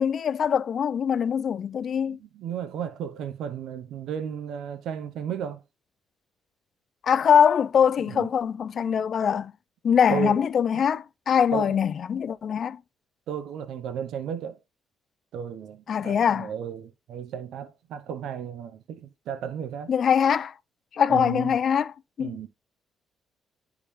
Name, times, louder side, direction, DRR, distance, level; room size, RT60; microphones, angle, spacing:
voice 1, 0.0-2.2 7.0-9.5 9.8-12.8 15.9-16.5 19.9-20.5 20.9-22.5, left 7 dB, 55° left, 0.4 m, -23 dB
voice 2, 2.1-5.6 8.1-8.3 10.1-10.4 10.7-10.9 11.5-11.8 13.3-14.6 15.3-19.9 21.1-21.6 22.2-22.5, right 8 dB, 80° right, 0.7 m, -34 dB
9.9 x 3.5 x 3.1 m
cardioid pair, 90°, 0 cm